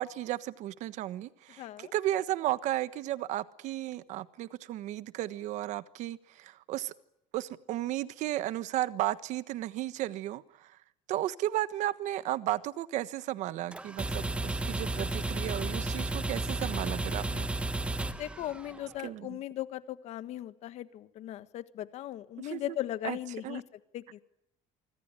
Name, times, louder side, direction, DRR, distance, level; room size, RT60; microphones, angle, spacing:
voice 1, 0.0-6.9 7.3-10.8 11.1-17.5 19.0-19.4 22.4-22.8 23.0-23.2 23.4-23.6, right 14 dB, 60° right, 14 dB, 1.3 m, -34 dB
voice 2, 1.6-1.9 18.2-23.6 23.9-24.2, left 13 dB, 50° left, 13 dB, 1.4 m, -38 dB
sound 1, 13.7-18.9, right 2 dB, 10° right, 1.2 m, -33 dB
25.5 x 25.0 x 9.0 m, 0.79 s
cardioid pair, 180°, 14 cm